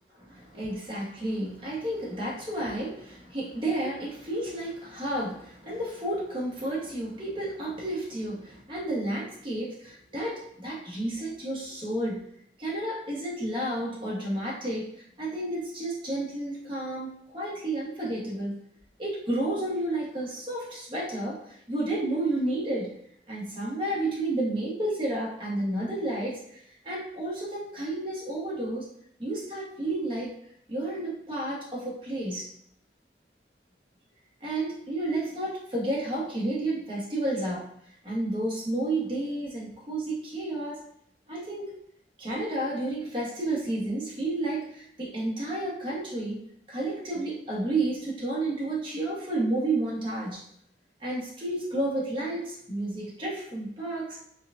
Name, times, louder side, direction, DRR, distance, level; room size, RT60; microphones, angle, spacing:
voice 1, 0.2-12.3 12.6-14.9 15.2-18.6 19.0-23.0 23.3-28.9 29.2-30.3 30.7-32.5 34.4-37.7 38.0-40.8 41.3-41.7 42.2-46.4 46.7-50.4 51.0-54.2, right 1 dB, 30° right, -5 dB, 1.0 m, -31 dB
4.5 x 2.2 x 2.4 m, 0.70 s
head